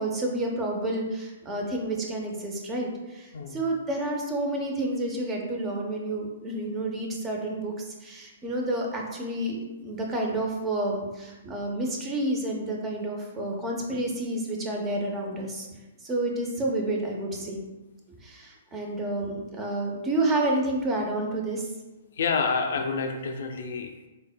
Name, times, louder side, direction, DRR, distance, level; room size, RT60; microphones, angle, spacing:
voice 1, 0.0-15.7 16.0-17.6 18.1-21.7, right 1 dB, 20° right, 0 dB, 0.7 m, -30 dB
voice 2, 22.1-24.1, left 5 dB, 65° left, 4 dB, 0.5 m, -28 dB
3.9 x 3.6 x 2.2 m, 1.1 s
hypercardioid pair, 120°, 0 cm